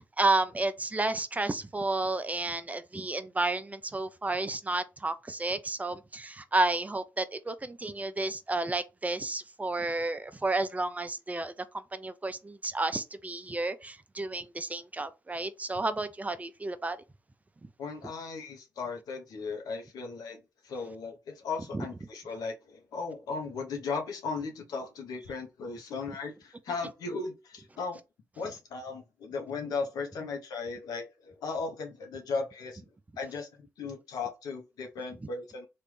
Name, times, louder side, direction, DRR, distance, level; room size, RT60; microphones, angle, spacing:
voice 1, 0.0-11.5 11.9-17.0 21.7-21.8, right 2 dB, 25° right, 0.5 m, -31 dB
voice 2, 17.8-28.0 28.4-32.8 33.2-35.7, left 4 dB, 80° left, 0.9 m, -37 dB
3.2 x 2.5 x 3.4 m
cardioid pair, 60°, 6 cm